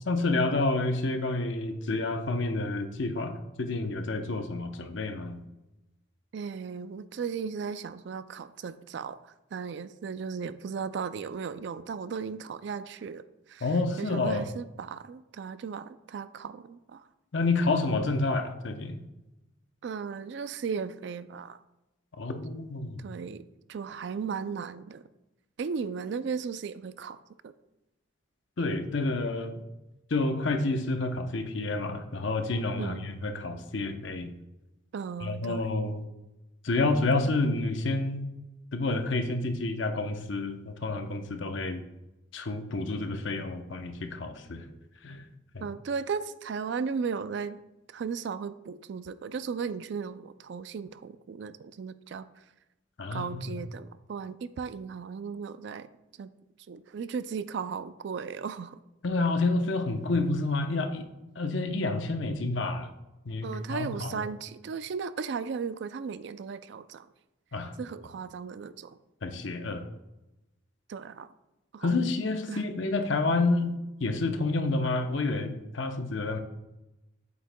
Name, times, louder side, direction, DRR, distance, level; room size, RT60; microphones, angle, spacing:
voice 1, 0.1-5.4 13.6-14.5 17.3-19.0 22.2-23.0 28.6-29.6 30.1-34.3 35.2-36.0 36.6-38.3 38.7-41.8 42.3-44.6 45.0-45.2 45.5-45.6 53.0-53.5 59.0-61.1 61.4-62.9 63.3-64.3 67.5-67.7 69.2-69.8 71.8-76.4, left 2 dB, 70° left, 6 dB, 0.7 m, -29 dB
voice 2, 6.3-13.2 13.5-13.7 14.0-17.1 19.8-21.6 23.0-25.0 25.6-27.5 32.8-33.1 34.9-35.7 45.6-47.6 47.9-52.4 53.1-55.9 56.2-56.3 56.7-58.8 63.4-67.1 67.8-69.0 70.9-71.3 71.7-72.0 72.5-72.6, right 6 dB, 60° right, 13 dB, 0.3 m, -36 dB
8.1 x 7.5 x 2.2 m, 0.96 s
head